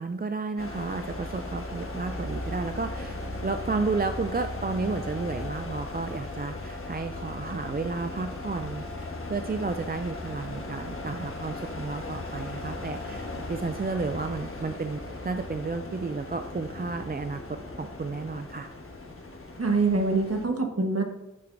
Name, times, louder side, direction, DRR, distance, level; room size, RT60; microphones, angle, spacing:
voice 1, 0.0-17.4 17.8-18.7, right 4 dB, 35° right, 8 dB, 0.4 m, -32 dB
sound 1, 0.6-20.4, left 2 dB, 45° left, 1.3 m, -37 dB
voice 2, 19.6-21.0, right 3 dB, 55° right, 3 dB, 1.3 m, -24 dB
8.8 x 6.8 x 2.6 m, 0.97 s
wide cardioid pair, 50°, 29 cm